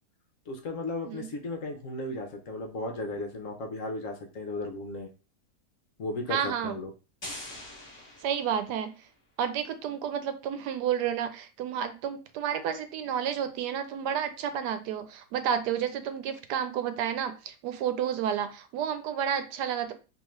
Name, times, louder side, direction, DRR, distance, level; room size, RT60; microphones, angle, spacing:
voice 1, 0.5-5.1 6.0-6.9, left 2 dB, 60° left, 4 dB, 1.0 m, -35 dB
voice 2, 6.3-6.8 8.2-9.0 9.4-19.9, right 8 dB, 90° right, 9 dB, 1.2 m, -31 dB
sound 1, 7.2-9.0, left 1 dB, 20° left, 0.9 m, -43 dB
3.6 x 2.9 x 3.1 m, 0.33 s
omnidirectional pair, 1.7 m